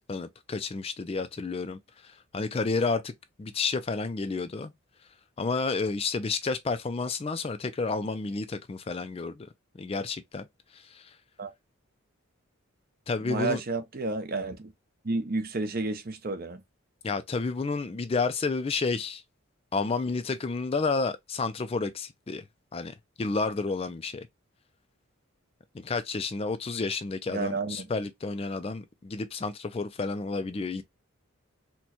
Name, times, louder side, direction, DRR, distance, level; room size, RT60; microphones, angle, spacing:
voice 1, 0.1-3.1 3.4-4.7 5.4-9.5 9.7-10.5 10.7-11.1 13.1-13.6 17.0-19.2 19.7-22.4 22.7-24.3 25.8-30.8, left 4 dB, 25° left, 0.3 m, -31 dB
voice 2, 13.2-14.7 15.0-16.6 27.3-27.9, right 3 dB, 45° right, 0.6 m, -31 dB
4.3 x 2.2 x 2.8 m
head